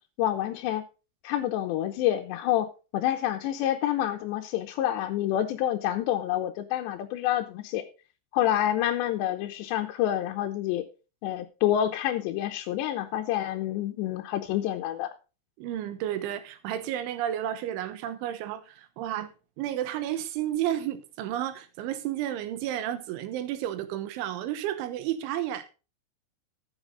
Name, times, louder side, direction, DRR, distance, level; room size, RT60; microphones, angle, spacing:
voice 1, 0.2-0.8 1.2-7.8 8.3-10.8 11.2-15.1, left 12 dB, 80° left, 2.9 m, -28 dB
voice 2, 15.6-19.3 19.6-25.7, right 11 dB, 80° right, 3.5 m, -32 dB
13.5 x 8.1 x 3.9 m
omnidirectional pair, 5.5 m